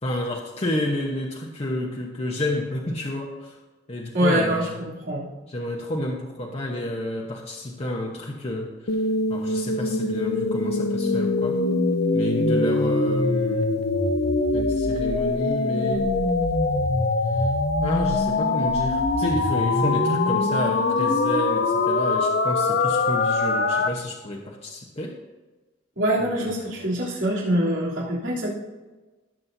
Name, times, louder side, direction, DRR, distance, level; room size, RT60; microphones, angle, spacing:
voice 1, 0.0-3.6 3.9-4.9 5.5-9.0 9.3-11.6 12.1-13.8 14.5-16.1 17.3-17.5 17.8-25.1 26.2-26.9, left 1 dB, 35° left, -1 dB, 0.9 m, -30 dB
voice 2, 4.1-5.3 26.0-28.5, right 1 dB, 75° right, -6 dB, 3.3 m, -24 dB
sound 1, 8.9-23.9, left 3 dB, 60° left, 0.7 m, -23 dB
16.5 x 7.5 x 2.7 m, 1.2 s
head